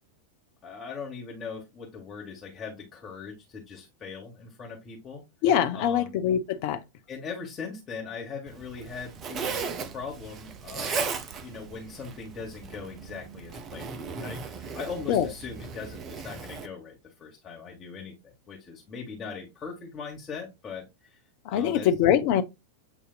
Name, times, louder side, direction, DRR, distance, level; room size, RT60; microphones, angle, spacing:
voice 1, 0.6-5.2 5.7-6.1 7.1-11.1 11.4-20.8 21.1-21.2 21.5-21.9, left 5 dB, 25° left, 1.2 m, -40 dB
voice 2, 5.4-6.8 15.1-15.3 21.5-22.4, left 9 dB, 45° left, 0.6 m, -23 dB
Zipper (clothing), 8.5-16.7, right 5 dB, 30° right, 0.6 m, -37 dB
8.0 x 2.7 x 2.4 m
figure-of-eight pair, 90°, 0 cm